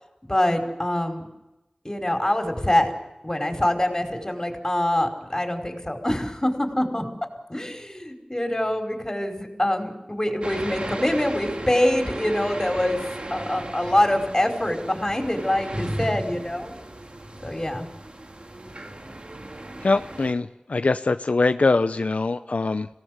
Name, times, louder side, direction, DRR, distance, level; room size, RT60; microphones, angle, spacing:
voice 1, 0.2-1.3 1.8-2.9 3.2-7.0 7.5-16.7 17.4-17.9, left 1 dB, 25° left, 4 dB, 5.1 m, -25 dB
sound 1, 10.4-20.3, right 1 dB, 50° right, 2.7 m, -36 dB
voice 2, 19.8-22.9, left 3 dB, 80° left, 9 dB, 0.7 m, -23 dB
26.5 x 18.0 x 8.1 m, 0.97 s
wide cardioid pair, 50°, 2 cm